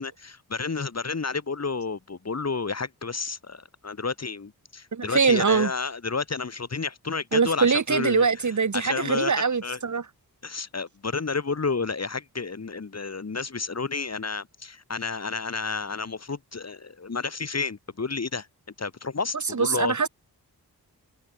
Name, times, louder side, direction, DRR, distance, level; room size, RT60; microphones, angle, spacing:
voice 1, 0.0-8.3 8.7-9.8 10.4-18.5 18.8-19.9, left 4 dB, 40° left, 4.6 m, -31 dB
voice 2, 4.9-5.7 7.3-10.0 19.5-20.1, right 5 dB, 50° right, 2.8 m, -23 dB
wide cardioid pair, 125°, 39 cm